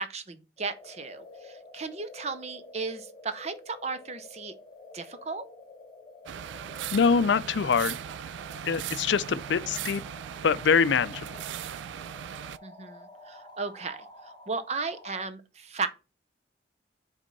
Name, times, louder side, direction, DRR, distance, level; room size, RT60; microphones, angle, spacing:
voice 1, 0.0-4.5 4.9-5.4 12.6-14.1 14.5-15.9, right 4 dB, 35° right, 0.6 m, -35 dB
sound 1, 0.6-15.2, left 2 dB, 25° left, 1.3 m, -49 dB
sound 2, 6.3-12.6, right 9 dB, 80° right, 0.3 m, -38 dB
voice 2, 6.9-8.0 8.6-10.0 10.4-11.3, left 5 dB, 80° left, 0.4 m, -24 dB
5.2 x 3.6 x 5.3 m
head